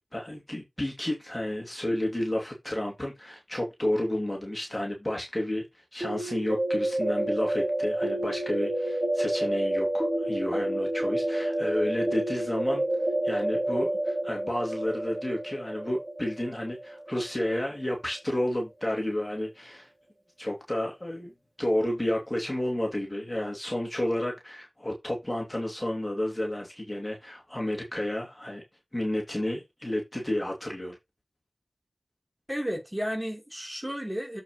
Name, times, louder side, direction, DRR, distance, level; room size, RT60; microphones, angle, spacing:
voice 1, 0.1-5.6 5.9-12.8 13.2-19.9 20.4-21.3 21.6-28.6 28.9-31.0, left 1 dB, 20° left, 2.7 m, -31 dB
sound 1, 6.0-17.7, right 1 dB, 40° right, 2.8 m, -29 dB
voice 2, 32.5-34.4, equal, 10° right, 3.6 m, -32 dB
7.5 x 6.6 x 3.2 m
wide cardioid pair, 45°, 0 cm